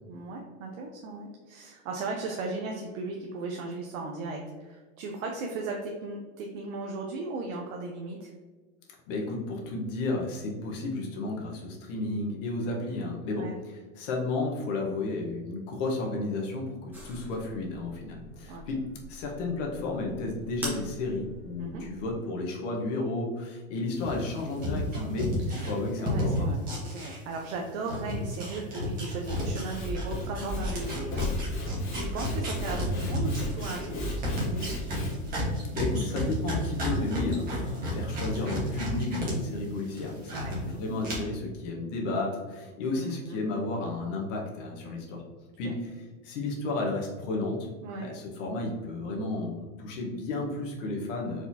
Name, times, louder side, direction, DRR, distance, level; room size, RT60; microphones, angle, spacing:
voice 1, 0.1-8.3 13.4-13.5 18.5-18.6 21.6-21.8 25.5-25.6 26.0-31.2 31.5-34.9 40.3-40.5 42.9-43.4 45.6-45.8 47.8-48.1, right 3 dB, 65° right, 1 dB, 0.8 m, -37 dB
voice 2, 9.1-18.8 19.1-25.3 25.6-26.5 35.7-45.2 45.6-45.9 46.2-47.7 48.0-51.5, left 2 dB, 55° left, -1 dB, 1.2 m, -32 dB
sound 1, 16.9-22.2, equal, 5° right, 1.0 m, -44 dB
sound 2, 24.0-27.6 27.8-39.3 39.6-40.6 41.0-41.1, equal, 20° right, 1.4 m, -32 dB
Sawing / Wood, 29.1-35.3, left 1 dB, 25° left, 0.9 m, -34 dB
4.5 x 3.9 x 2.7 m, 1.3 s
supercardioid pair, 160°, 43 cm